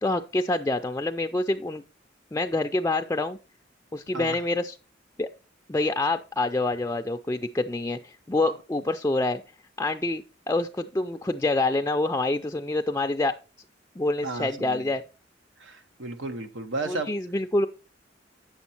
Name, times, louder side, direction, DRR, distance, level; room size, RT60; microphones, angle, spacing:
voice 1, 0.0-1.8 2.3-3.4 3.9-4.8 5.2-5.3 5.7-9.4 9.8-13.4 14.0-15.0 16.9-17.7, left 2 dB, 15° left, 0.4 m, -26 dB
voice 2, 14.2-14.9 15.6-17.1, right 2 dB, 90° right, 1.3 m, -34 dB
8.9 x 7.1 x 4.3 m
head